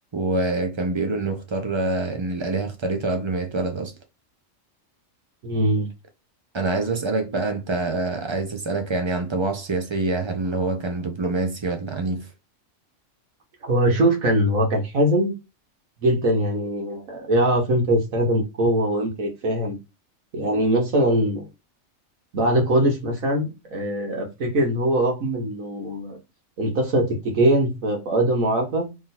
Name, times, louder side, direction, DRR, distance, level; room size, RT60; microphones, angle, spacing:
voice 1, 0.1-3.9 6.5-12.3, right 3 dB, 35° right, 0.5 m, -26 dB
voice 2, 5.4-5.9 13.6-15.3 16.0-19.8 20.3-21.4 22.3-26.2 26.6-28.9, right 1 dB, 90° right, 1.8 m, -22 dB
3.7 x 3.0 x 4.2 m
omnidirectional pair, 1.4 m